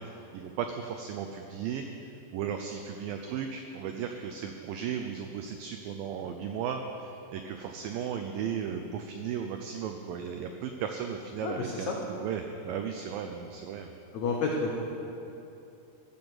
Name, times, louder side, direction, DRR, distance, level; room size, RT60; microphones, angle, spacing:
voice 1, 0.0-1.9 2.3-13.9, right 7 dB, 85° right, 5 dB, 2.0 m, -35 dB
voice 2, 11.4-12.0 14.1-14.8, left 3 dB, 90° left, -1 dB, 1.6 m, -30 dB
15.0 x 7.1 x 7.7 m, 2.9 s
omnidirectional pair, 4.8 m